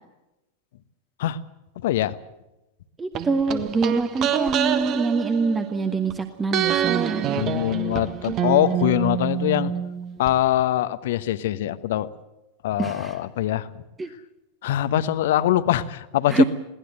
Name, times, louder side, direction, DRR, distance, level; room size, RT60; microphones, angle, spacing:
voice 1, 1.8-2.2 7.3-9.7 10.2-12.1 12.6-13.8 14.6-16.4, left 13 dB, 55° left, 13 dB, 1.1 m, -23 dB
voice 2, 3.0-7.4 12.8-13.2 14.0-14.1 16.3-16.4, right 4 dB, 15° right, 8 dB, 1.4 m, -24 dB
sound 1, 3.1-6.1 6.5-10.3 10.6-10.7, right 9 dB, 35° right, 1.5 m, -26 dB
21.5 x 18.0 x 7.9 m, 0.95 s
figure-of-eight pair, 90°, 0 cm